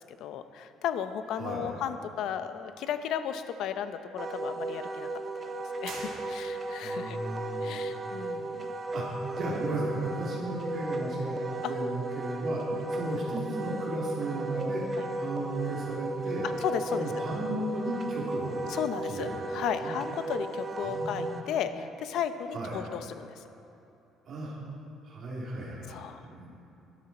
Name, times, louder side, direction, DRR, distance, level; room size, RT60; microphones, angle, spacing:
voice 1, 0.2-5.1 5.4-5.5 5.8-7.2 7.6-8.7 11.6-11.7 15.0-15.1 16.6-17.1 18.7-23.4 25.9-26.2, left 9 dB, 70° left, 10 dB, 0.6 m, -34 dB
voice 2, 1.4-1.7 6.8-8.1 8.9-11.4 11.7-14.8 15.2-16.5 16.9-18.6 19.1-19.3 19.8-19.9 20.8-21.4 22.5-22.8 24.3-24.5 25.0-26.0 26.2-26.5, right 1 dB, 45° right, -5 dB, 2.9 m, -35 dB
Wind instrument woodwind instrument, 4.2-21.4, right 2 dB, 30° right, 0.7 m, -35 dB
sound 1, 5.8-6.9, right 3 dB, 80° right, 3.3 m, -44 dB
13.0 x 11.5 x 4.3 m, 2.9 s
cardioid pair, 140°, 0 cm